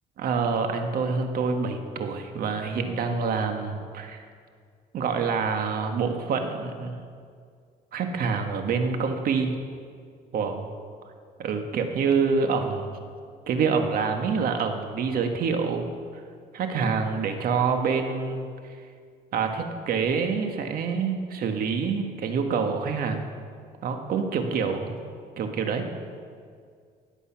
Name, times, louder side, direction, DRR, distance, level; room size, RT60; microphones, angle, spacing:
voice 1, 0.2-4.2 4.9-6.9 7.9-9.5 10.3-10.7 11.4-13.0 13.5-15.9 16.5-18.4 19.3-23.3 23.8-24.9 25.4-25.9, right 5 dB, 60° right, 5 dB, 1.7 m, -26 dB
19.0 x 8.3 x 5.9 m, 2.1 s
cardioid pair, 110°, 17 cm